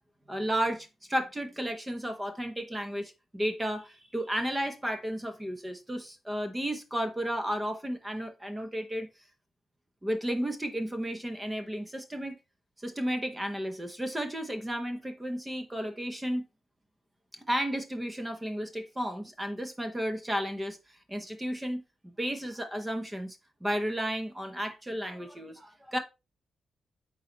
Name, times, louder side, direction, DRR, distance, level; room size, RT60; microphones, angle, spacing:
voice 1, 0.3-9.1 10.0-12.4 12.8-16.4 17.5-20.8 21.1-26.0, equal, 10° right, 0.7 m, -33 dB
8.7 x 3.9 x 3.1 m
wide cardioid pair, 170°, 0 cm